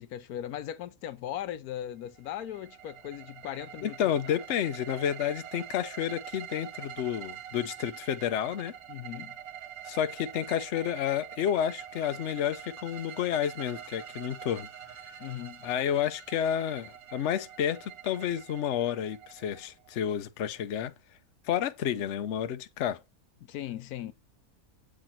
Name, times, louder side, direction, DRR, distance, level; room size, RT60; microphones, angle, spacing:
voice 1, 0.0-4.4 8.9-9.4 15.2-15.6 23.4-24.1, left 11 dB, 80° left, 1.1 m, -38 dB
sound 1, 2.2-20.0, right 10 dB, 70° right, 1.4 m, -45 dB
voice 2, 3.8-8.7 9.8-14.7 15.6-20.9 21.4-23.0, left 9 dB, 60° left, 0.9 m, -30 dB
7.5 x 4.9 x 4.3 m
omnidirectional pair, 1.6 m